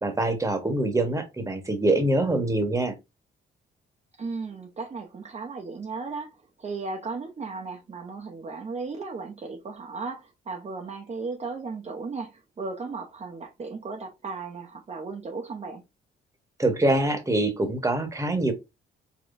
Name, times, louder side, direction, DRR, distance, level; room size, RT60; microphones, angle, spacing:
voice 1, 0.0-2.9 16.6-18.5, right 2 dB, 15° right, 1.4 m, -24 dB
voice 2, 4.2-15.8, right 4 dB, 35° right, 0.9 m, -36 dB
5.0 x 3.0 x 2.6 m
cardioid pair, 90°, 20 cm